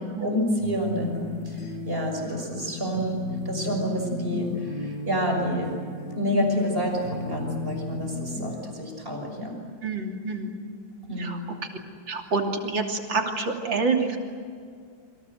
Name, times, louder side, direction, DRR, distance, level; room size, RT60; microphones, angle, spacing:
voice 1, 0.0-5.8 6.2-9.6 11.1-11.4, equal, 30° right, 2 dB, 6.3 m, -28 dB
sound 1, 0.6-8.6, left 2 dB, 65° left, 8.0 m, -35 dB
voice 2, 9.8-10.6 11.2-11.4 12.1-14.2, right 4 dB, 75° right, 2 dB, 3.7 m, -27 dB
28.0 x 25.5 x 7.9 m, 2.1 s
omnidirectional pair, 2.1 m